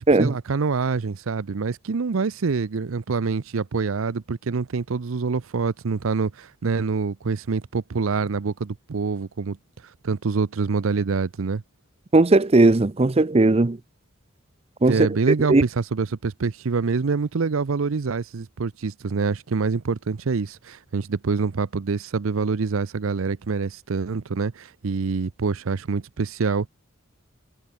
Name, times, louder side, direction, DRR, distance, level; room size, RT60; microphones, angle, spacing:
voice 1, 0.0-9.6 10.0-11.6 14.9-26.7, right 4 dB, 80° right, 0.6 m, -26 dB
voice 2, 12.1-13.8 14.8-15.0 15.5-15.6, right 2 dB, 30° right, 0.5 m, -17 dB
head